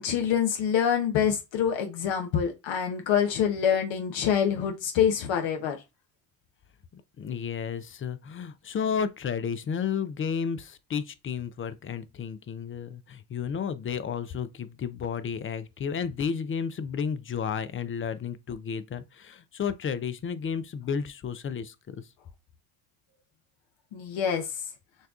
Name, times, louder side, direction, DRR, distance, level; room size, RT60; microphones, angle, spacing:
voice 1, 0.0-5.8 23.9-24.6, left 8 dB, 65° left, 0.9 m, -26 dB
voice 2, 6.9-22.0, left 7 dB, 30° left, 0.4 m, -32 dB
6.5 x 2.3 x 2.4 m
hypercardioid pair, 65°, 49 cm